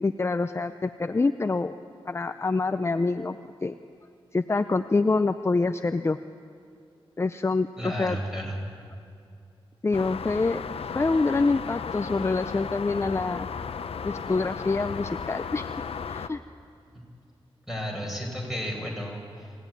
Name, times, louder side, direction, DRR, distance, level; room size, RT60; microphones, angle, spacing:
voice 1, 0.0-1.7 2.1-3.8 4.3-6.2 7.2-8.2 9.8-10.6 10.9-13.5 14.0-15.7 16.1-16.4, left 3 dB, 25° left, 10 dB, 0.5 m, -26 dB
voice 2, 7.8-8.7 16.9-17.0 17.7-19.5, equal, 5° right, 0 dB, 5.6 m, -33 dB
sound 1, 9.9-16.3, left 6 dB, 80° left, 0.8 m, -35 dB
26.5 x 16.5 x 9.3 m, 2.4 s
wide cardioid pair, 115°, 10 cm